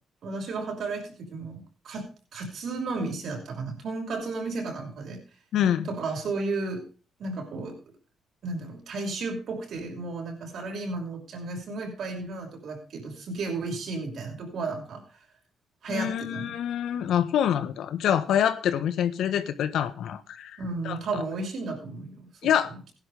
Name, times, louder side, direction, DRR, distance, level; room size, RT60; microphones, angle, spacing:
voice 1, 0.2-5.2 5.9-6.8 7.2-7.8 8.4-15.0 15.8-16.5 20.6-22.3 22.7-22.8, right 3 dB, 65° right, 2 dB, 5.9 m, -33 dB
voice 2, 5.5-5.9 15.9-20.6 20.8-21.2 22.4-22.7, left 9 dB, 75° left, 12 dB, 1.4 m, -26 dB
16.5 x 11.0 x 3.5 m, 0.35 s
cardioid pair, 90°, 0 cm